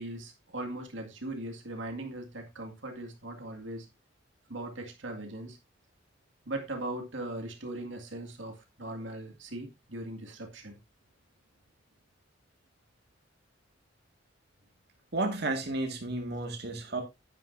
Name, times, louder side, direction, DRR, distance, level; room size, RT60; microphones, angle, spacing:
voice 1, 0.0-3.9 4.5-5.6 6.5-10.8, right 1 dB, 80° right, 2.0 m, -39 dB
voice 2, 15.1-17.0, right 2 dB, 60° right, 1.9 m, -32 dB
10.0 x 9.7 x 2.6 m
head